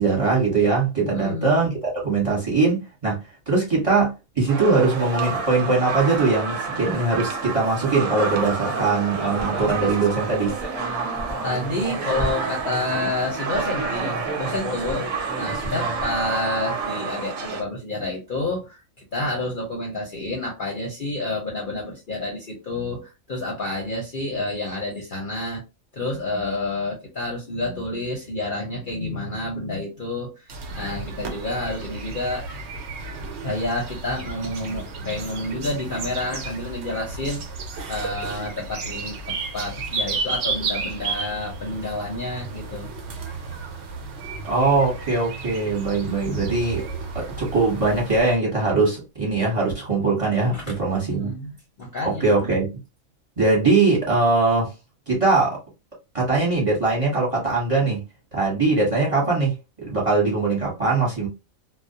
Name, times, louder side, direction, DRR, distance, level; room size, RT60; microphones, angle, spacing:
voice 1, 0.0-1.7 2.0-3.2 3.5-4.1 4.3-10.5 44.4-46.9 47.1-51.3 52.0-52.7 53.4-54.7 55.1-55.6 56.1-58.0 58.3-59.5 59.8-61.3, right 3 dB, 30° right, 0.9 m, -21 dB
voice 2, 1.1-1.6 11.4-15.1 15.4-25.6 25.9-30.5 30.8-32.4 33.4-37.4 37.9-42.9 50.5-50.7 51.1-52.3, left 2 dB, 50° left, 0.7 m, -29 dB
sound 1, 4.5-17.6, right 5 dB, 85° right, 1.0 m, -29 dB
Human voice, 9.2-13.1 13.5-16.2, equal, ahead, 0.5 m, -34 dB
sound 2, 30.5-48.4, right 4 dB, 65° right, 0.8 m, -33 dB
2.3 x 2.0 x 2.6 m
omnidirectional pair, 1.4 m